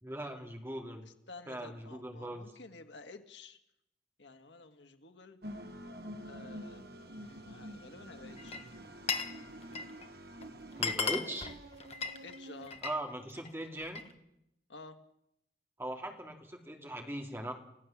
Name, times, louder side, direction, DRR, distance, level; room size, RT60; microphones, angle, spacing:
voice 1, 0.0-1.1 1.5-2.5 10.8-11.5 12.8-14.0 15.8-17.5, right 1 dB, 15° right, 2 dB, 2.7 m, -40 dB
voice 2, 1.1-3.6 4.2-5.4 6.3-6.9 7.2-8.7 10.8-11.2 12.2-12.8 14.7-15.0, left 3 dB, 90° left, 7 dB, 1.9 m, -52 dB
sound 1, 5.4-12.7, equal, 60° right, 1.5 m, -48 dB
Glass, 8.4-9.4 9.6-10.1 10.4-10.5 10.7-13.0 13.4-14.1, left 5 dB, 35° left, 1.4 m, -36 dB
28.5 x 16.0 x 7.3 m, 0.82 s
head